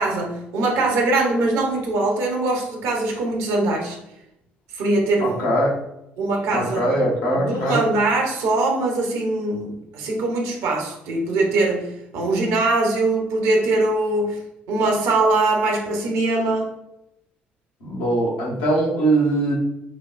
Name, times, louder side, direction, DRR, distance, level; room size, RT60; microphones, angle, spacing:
voice 1, 0.0-4.0 4.7-5.5 6.2-6.9 7.3-14.4 14.7-16.7, right 2 dB, 60° right, 0 dB, 1.0 m, -22 dB
voice 2, 5.2-5.7 6.5-7.8 17.8-19.5, right 1 dB, 65° left, -3 dB, 1.2 m, -21 dB
6.1 x 2.3 x 2.5 m, 0.85 s
figure-of-eight pair, 50°, 6 cm